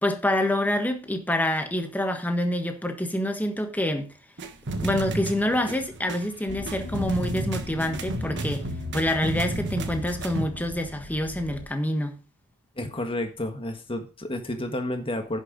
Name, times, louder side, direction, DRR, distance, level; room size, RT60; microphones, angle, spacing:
voice 1, 0.0-4.1 4.8-8.7 8.9-12.2, left 1 dB, 10° left, 1.4 m, -27 dB
sound 1, 4.4-10.5, right 1 dB, 55° right, 1.3 m, -32 dB
sound 2, 6.5-11.7, left 2 dB, 45° left, 0.8 m, -40 dB
voice 2, 12.8-15.4, left 1 dB, 25° left, 1.6 m, -31 dB
10.5 x 6.7 x 5.1 m
head